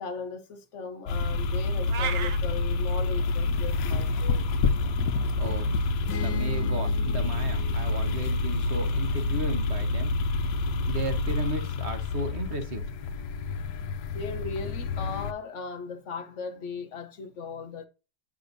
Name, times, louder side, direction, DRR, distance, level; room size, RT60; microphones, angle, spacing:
voice 1, 0.0-4.5 14.1-17.9, left 4 dB, 55° left, 0.9 m, -37 dB
sound 1, 1.1-15.3, left 3 dB, 75° left, 1.2 m, -28 dB
sound 2, 1.9-2.4, right 8 dB, 80° right, 0.5 m, -31 dB
voice 2, 4.9-13.1, right 2 dB, 45° right, 1.3 m, -36 dB
sound 3, 6.1-9.8, left 9 dB, 90° left, 1.4 m, -42 dB
8.4 x 6.1 x 2.6 m
omnidirectional pair, 1.9 m